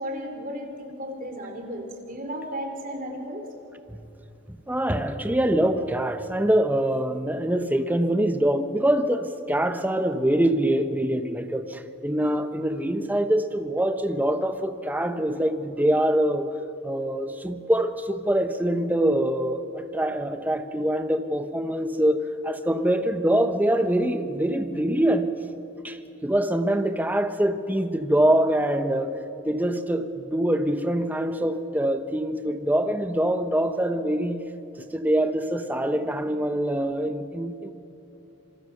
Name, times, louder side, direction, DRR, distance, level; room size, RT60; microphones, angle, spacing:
voice 1, 0.0-3.4, equal, 40° right, 3.4 m, -34 dB
voice 2, 4.5-16.5 16.8-19.6 19.9-25.3 25.8-26.0 26.2-29.1 29.5-34.4 34.9-37.7, right 1 dB, 10° right, 0.9 m, -24 dB
27.0 x 22.5 x 6.7 m
head